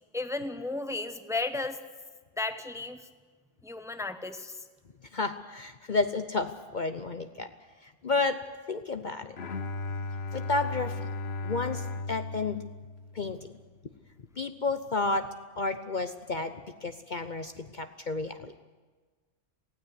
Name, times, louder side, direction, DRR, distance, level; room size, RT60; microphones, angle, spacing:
voice 1, 0.1-1.8 2.4-3.0 3.6-4.5, left 3 dB, 5° right, 10 dB, 1.0 m, -33 dB
voice 2, 5.1-7.5 7.8-8.4 8.7-9.4 10.3-10.9 11.4-12.6 13.1-13.5 14.4-15.3 15.6-18.5, left 3 dB, 45° left, 9 dB, 0.9 m, -31 dB
Bowed string instrument, 9.4-13.5, left 3 dB, 60° left, 1.3 m, -36 dB
19.0 x 16.0 x 9.7 m, 1.4 s
omnidirectional pair, 1.2 m